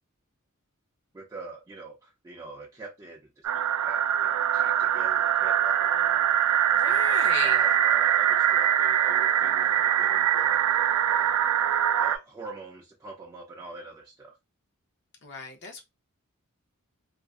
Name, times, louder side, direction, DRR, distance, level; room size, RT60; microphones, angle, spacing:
voice 1, 1.1-11.4 12.0-14.4, right 3 dB, 15° right, 0.4 m, -45 dB
sound 1, 3.4-12.2, right 10 dB, 90° right, 0.3 m, -23 dB
voice 2, 6.7-7.7 15.2-15.8, left 4 dB, 55° left, 0.6 m, -36 dB
2.4 x 2.4 x 2.3 m
head